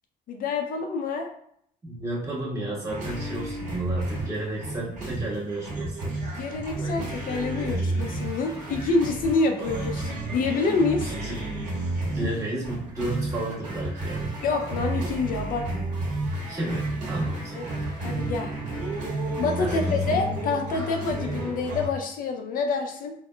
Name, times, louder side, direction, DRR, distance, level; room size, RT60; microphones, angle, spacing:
voice 1, 0.3-1.3 6.3-11.1 14.4-15.9 17.5-18.5 19.4-23.1, left 3 dB, 55° left, 3 dB, 0.4 m, -27 dB
voice 2, 1.8-6.2 11.0-11.5 12.1-14.3 16.4-17.7 19.6-19.9, right 1 dB, 20° right, -6 dB, 1.3 m, -32 dB
sound 1, 2.9-21.9, right 1 dB, 50° right, 1.3 m, -31 dB
3.7 x 2.0 x 2.2 m, 0.69 s
cardioid pair, 110°, 17 cm